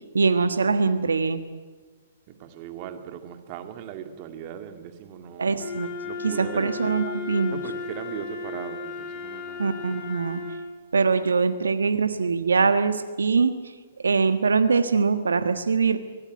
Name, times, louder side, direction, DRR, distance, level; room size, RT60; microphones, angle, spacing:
voice 1, 0.1-1.4 5.4-5.9 6.2-7.6 9.6-10.4 10.9-13.7 14.0-16.0, right 4 dB, 85° right, 1.4 m, -23 dB
voice 2, 2.3-5.6 6.0-6.8 7.5-9.7, right 9 dB, 40° right, 2.2 m, -38 dB
Wind instrument woodwind instrument, 5.6-10.7, left 4 dB, 40° left, 7.1 m, -35 dB
24.0 x 18.0 x 9.5 m
hypercardioid pair, 130°, 0 cm